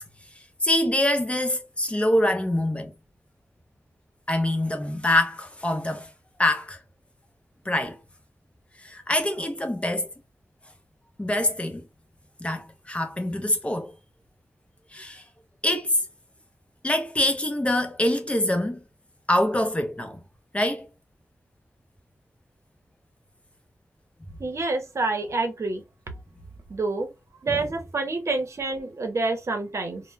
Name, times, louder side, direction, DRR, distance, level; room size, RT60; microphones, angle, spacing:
voice 1, 0.6-2.9 4.3-6.1 6.4-6.8 7.7-8.0 8.8-10.1 11.2-11.8 12.4-13.9 14.9-15.2 15.6-16.0 16.8-18.8 19.3-20.2 20.5-20.9, left 1 dB, 20° left, 0.6 m, -24 dB
voice 2, 24.4-25.8 26.7-27.1 27.4-30.0, right 3 dB, 60° right, 0.7 m, -27 dB
2.1 x 2.0 x 3.1 m
cardioid pair, 60°, 5 cm